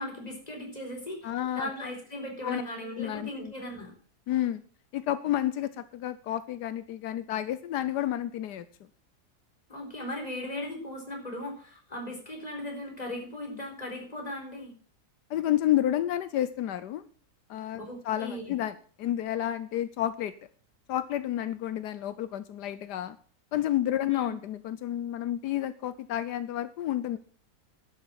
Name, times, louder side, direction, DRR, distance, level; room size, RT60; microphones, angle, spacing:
voice 1, 0.0-3.9 9.7-14.7 17.9-18.6 24.1-24.3, left 1 dB, 25° left, 1 dB, 4.4 m, -38 dB
voice 2, 1.2-1.7 2.4-2.6 2.9-3.5 4.3-4.6 4.9-8.7 15.3-17.0 17.5-20.3 20.9-23.2 23.5-27.2, left 12 dB, 85° left, 13 dB, 1.3 m, -30 dB
11.5 x 9.5 x 5.9 m, 0.42 s
omnidirectional pair, 1.7 m